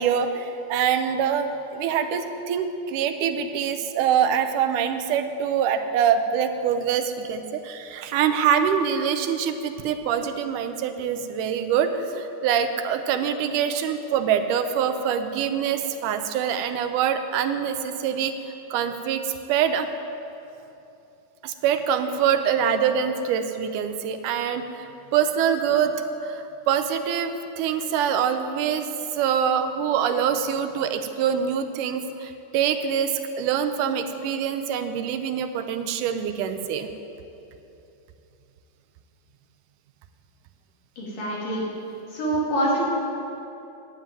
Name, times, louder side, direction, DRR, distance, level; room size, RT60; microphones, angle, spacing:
voice 1, 0.0-18.3 18.7-19.9 21.4-25.9 26.2-36.9, right 8 dB, 85° right, 8 dB, 2.2 m, -24 dB
voice 2, 41.0-41.7 42.1-42.8, right 1 dB, 85° left, -5 dB, 4.4 m, -25 dB
10.5 x 7.5 x 9.1 m, 2.8 s
omnidirectional pair, 3.7 m